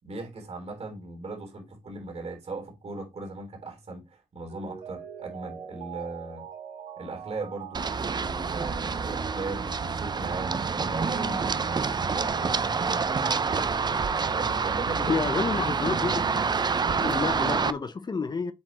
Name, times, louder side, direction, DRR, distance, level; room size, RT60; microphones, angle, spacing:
voice 1, 0.0-6.5 7.0-12.7 14.2-15.2, right 3 dB, 50° right, 3.4 m, -38 dB
Mallet percussion, 4.5-10.0 10.3-10.4, right 8 dB, 85° right, 3.4 m, -43 dB
Run, 7.7-17.7, right 5 dB, 30° right, 0.5 m, -27 dB
voice 2, 15.1-16.2 17.0-18.5, left 4 dB, 30° left, 0.6 m, -29 dB
7.8 x 4.4 x 3.0 m
cardioid pair, 100°, 14 cm